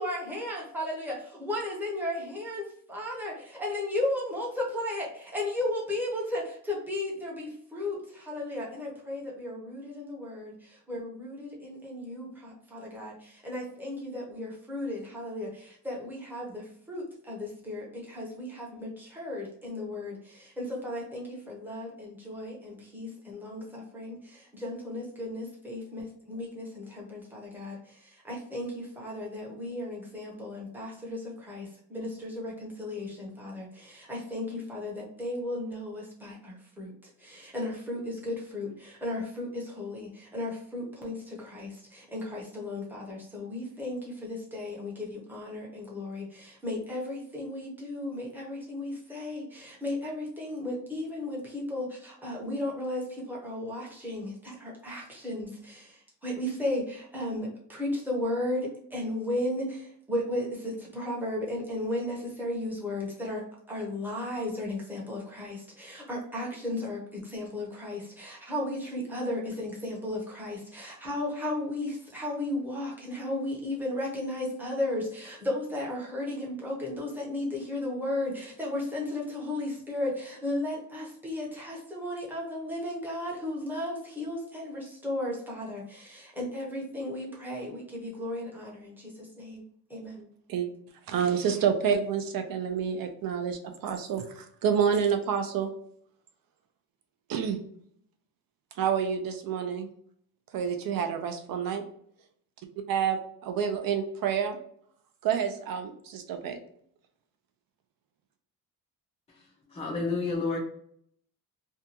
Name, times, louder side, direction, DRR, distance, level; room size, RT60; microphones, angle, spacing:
voice 1, 0.0-36.9 37.2-89.6 89.9-90.3, left 1 dB, 5° right, -3 dB, 0.7 m, -35 dB
voice 2, 91.1-95.7 97.3-97.6 98.8-99.9 100.5-101.8 102.9-104.6 105.2-106.6, right 7 dB, 65° right, 6 dB, 0.6 m, -28 dB
voice 3, 109.3-110.6, left 3 dB, 15° left, -3 dB, 0.4 m, -31 dB
2.6 x 2.3 x 2.8 m, 0.65 s
cardioid pair, 180°, 38 cm